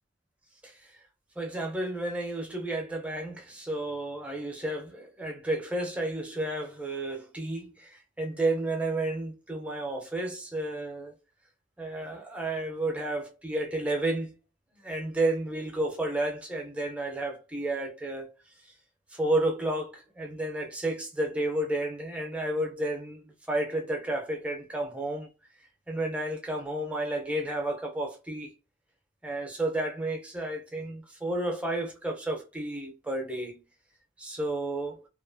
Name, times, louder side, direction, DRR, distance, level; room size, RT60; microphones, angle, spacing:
voice 1, 1.4-7.9 8.2-11.1 11.8-14.3 14.8-18.3 19.1-25.3 25.9-28.5 29.2-33.6 34.2-35.1, right 1 dB, 5° right, 0.5 m, -31 dB
2.6 x 2.3 x 2.5 m
head